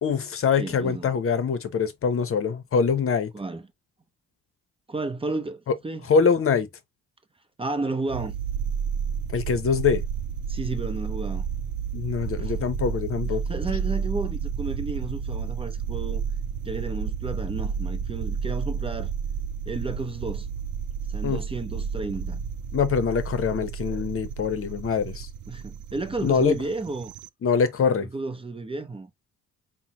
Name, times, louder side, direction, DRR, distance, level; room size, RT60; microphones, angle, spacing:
voice 1, 0.0-3.3 6.1-6.7 9.3-10.0 11.9-13.4 21.2-21.4 22.7-25.3 26.2-26.6 27.4-28.1, left 6 dB, 45° left, 0.8 m, -24 dB
voice 2, 0.6-1.1 3.3-3.6 4.9-6.1 7.6-8.4 10.5-11.4 12.4-12.5 13.5-16.2 16.6-19.1 19.7-20.5 21.1-22.4 25.5-27.1 28.0-29.1, right 3 dB, 20° right, 0.7 m, -32 dB
sound 1, 8.1-27.3, right 7 dB, 75° right, 0.6 m, -31 dB
5.4 x 2.2 x 2.9 m
cardioid pair, 90°, 30 cm